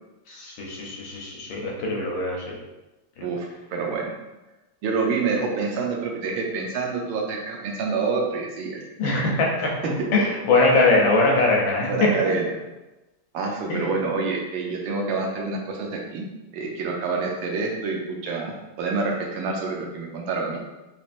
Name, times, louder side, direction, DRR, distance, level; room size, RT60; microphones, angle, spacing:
voice 1, 0.3-2.5 9.0-9.7 10.1-12.1 13.7-13.9, left 2 dB, 70° left, -2 dB, 1.3 m, -22 dB
voice 2, 3.2-4.1 4.8-9.2 9.8-10.0 11.9-12.5 13.3-16.3 16.5-20.7, right 4 dB, 75° right, 0 dB, 1.3 m, -27 dB
4.1 x 3.1 x 2.5 m, 1.0 s
omnidirectional pair, 2.4 m